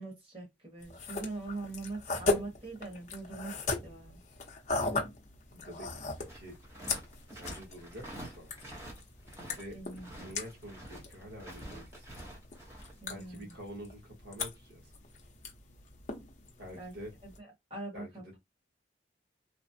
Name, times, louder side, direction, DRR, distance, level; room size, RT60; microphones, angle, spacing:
voice 1, 0.0-3.5 3.8-4.2 9.7-10.3 13.0-13.5 16.7-16.9 17.2-18.2, right 3 dB, 30° right, 1.6 m, -42 dB
sound 1, 0.8-17.4, left 3 dB, 40° left, 0.7 m, -39 dB
voice 2, 5.5-6.5 7.3-8.5 9.6-9.8 10.2-12.1 13.1-14.9 16.6-17.1 17.9-18.4, equal, 65° right, 1.2 m, -47 dB
sound 2, 6.3-9.6 9.9-12.9, right 1 dB, 15° right, 0.8 m, -47 dB
3.1 x 2.1 x 2.7 m
head